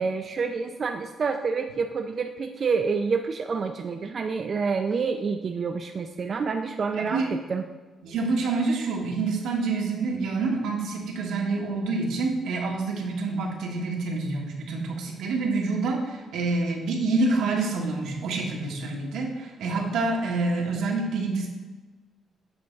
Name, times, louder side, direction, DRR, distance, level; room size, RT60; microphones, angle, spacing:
voice 1, 0.0-7.6, right 5 dB, 45° right, 5 dB, 0.4 m, -28 dB
voice 2, 6.9-7.3 8.0-21.5, right 3 dB, 90° right, 0 dB, 1.3 m, -27 dB
7.8 x 3.5 x 5.2 m, 1.3 s
cardioid pair, 120°, 0 cm